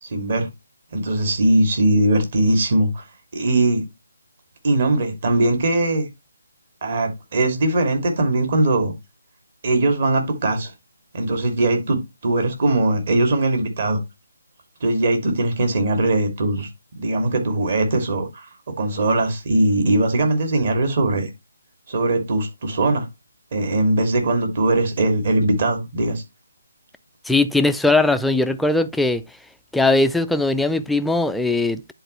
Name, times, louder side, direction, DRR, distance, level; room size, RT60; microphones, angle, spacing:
voice 1, 0.0-0.5 0.9-3.0 3.3-3.8 4.6-6.1 6.8-8.9 9.6-10.7 11.1-14.0 14.8-16.7 17.0-18.5 18.8-21.3 21.9-23.1 23.5-26.2, right 2 dB, 50° right, 2.7 m, -20 dB
voice 2, 27.3-29.2 29.7-31.9, left 2 dB, ahead, 0.4 m, -19 dB
10.0 x 4.4 x 3.2 m
figure-of-eight pair, 150°, 0 cm